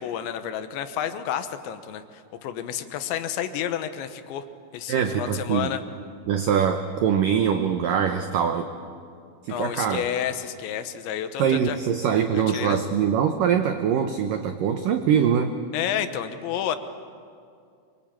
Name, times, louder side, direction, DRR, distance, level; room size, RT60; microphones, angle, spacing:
voice 1, 0.0-4.4 4.7-5.8 9.5-11.8 12.3-12.8 15.7-16.8, left 10 dB, 85° left, 10 dB, 3.4 m, -30 dB
voice 2, 4.9-5.7 6.3-8.7 9.4-10.0 11.4-15.5, right 8 dB, 85° right, 7 dB, 1.9 m, -23 dB
25.0 x 24.0 x 8.9 m, 2.3 s
omnidirectional pair, 5.3 m